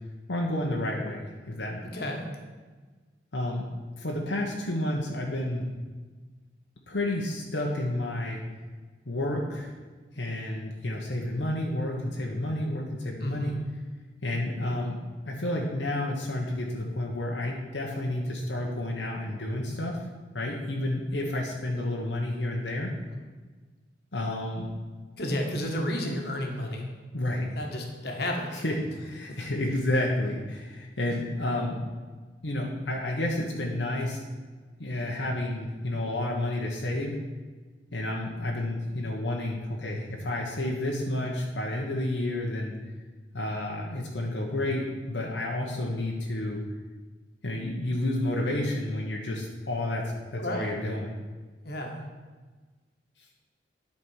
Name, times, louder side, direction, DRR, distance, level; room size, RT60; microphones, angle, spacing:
voice 1, 0.3-1.8 3.3-3.7 4.0-5.6 6.9-8.4 9.1-9.7 10.1-13.6 14.2-15.0 15.3-20.0 20.3-22.9 24.1-24.7 27.1-27.6 28.6-28.8 29.0-31.8 32.4-34.3 34.8-37.2 37.9-42.7 43.3-46.6 47.4-51.1, left 1 dB, 85° left, -1 dB, 1.1 m, -30 dB
voice 2, 1.8-2.2 13.2-13.6 23.0-23.2 25.2-26.9 27.5-28.5 29.2-29.4 50.3-50.8 51.6-52.0, left 1 dB, 60° left, 2 dB, 1.5 m, -32 dB
10.5 x 4.3 x 6.3 m, 1.4 s
head